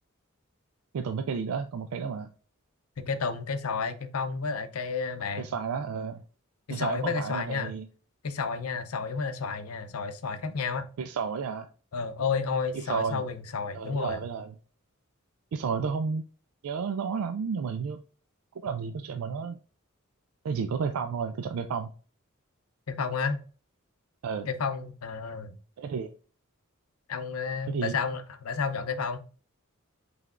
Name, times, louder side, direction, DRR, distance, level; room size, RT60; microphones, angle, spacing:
voice 1, 0.9-2.3 5.4-6.2 6.7-7.9 11.0-11.7 12.8-13.2 13.7-14.5 15.5-16.2 16.6-18.0 18.6-19.6 20.4-21.9 24.2-24.5 25.8-26.1 27.7-28.0, right 6 dB, 75° right, 0.4 m, -31 dB
voice 2, 3.0-5.5 6.7-7.7 8.2-10.9 11.9-14.2 22.9-23.4 24.5-25.6 27.1-29.2, left 5 dB, 85° left, 0.6 m, -31 dB
5.7 x 3.3 x 2.4 m
head